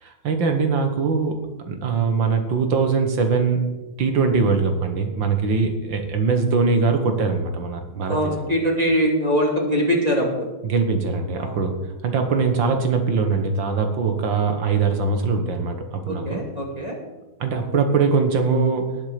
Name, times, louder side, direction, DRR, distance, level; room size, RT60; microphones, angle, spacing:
voice 1, 0.0-1.4 1.7-3.6 4.0-8.3 10.6-11.8 12.0-16.4 17.4-18.9, right 4 dB, 75° right, 5 dB, 2.1 m, -22 dB
voice 2, 8.1-10.5 11.4-11.6 16.1-17.0, equal, 20° right, -1 dB, 2.4 m, -22 dB
18.5 x 7.4 x 5.1 m, 1.1 s
omnidirectional pair, 2.1 m